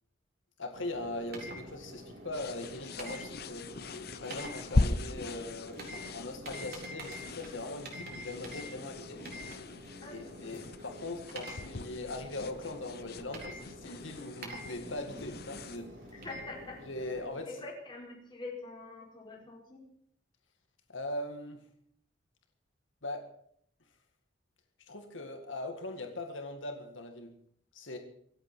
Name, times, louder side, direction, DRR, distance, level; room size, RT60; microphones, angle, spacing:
voice 1, 0.6-3.7 4.2-5.8 6.1-9.2 10.1-15.9 16.9-17.6 20.9-21.6 23.0-23.3 24.9-27.3 27.7-28.0, left 2 dB, 85° left, 5 dB, 2.0 m, -40 dB
sound 1, 0.8-17.2, equal, 55° right, 4.0 m, -47 dB
sound 2, 2.3-15.8, left 2 dB, 55° left, 0.8 m, -38 dB
voice 2, 10.0-10.6 16.1-16.8 17.5-19.8, left 3 dB, 25° left, -2 dB, 5.0 m, -45 dB
24.5 x 8.6 x 6.2 m, 0.68 s
head